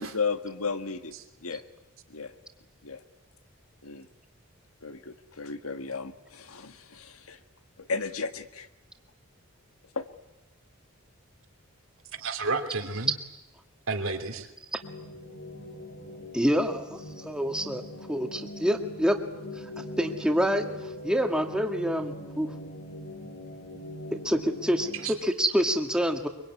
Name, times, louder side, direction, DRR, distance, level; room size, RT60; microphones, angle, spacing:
voice 1, 0.1-1.1 1.4-1.6 2.1-2.3 2.8-3.0 3.8-4.1 4.8-7.4 7.9-8.7 10.0-10.1, left 4 dB, 85° left, 9 dB, 1.6 m, -34 dB
voice 2, 12.1-13.1 13.9-14.5 24.9-25.1, right 3 dB, 70° right, 5 dB, 3.0 m, -31 dB
sound 1, 14.8-25.2, equal, 70° left, 6.0 m, -42 dB
voice 3, 16.3-17.8 18.1-19.2 20.0-20.6 21.0-22.5 24.1-26.3, equal, 5° right, 4 dB, 1.8 m, -26 dB
24.0 x 24.0 x 9.7 m, 0.94 s
head